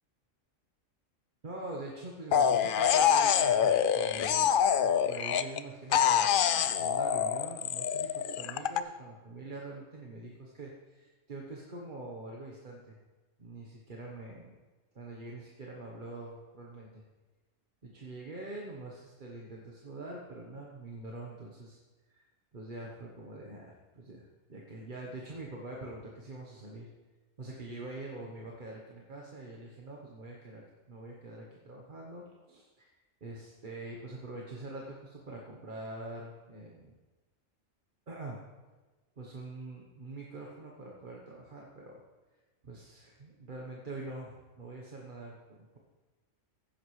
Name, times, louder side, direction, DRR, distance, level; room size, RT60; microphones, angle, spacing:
voice 1, 1.4-13.0 13.4-14.6 14.9-17.0 17.8-21.8 22.1-22.3 22.5-26.9 27.4-32.9 33.2-36.9 38.1-38.4 39.2-42.0 42.3-45.8, right 2 dB, 40° right, -2 dB, 1.3 m, -44 dB
sound 1, 2.3-5.6 5.9-8.8, left 8 dB, 65° left, 0.5 m, -26 dB
15.5 x 10.5 x 3.2 m, 1.2 s
omnidirectional pair, 1.3 m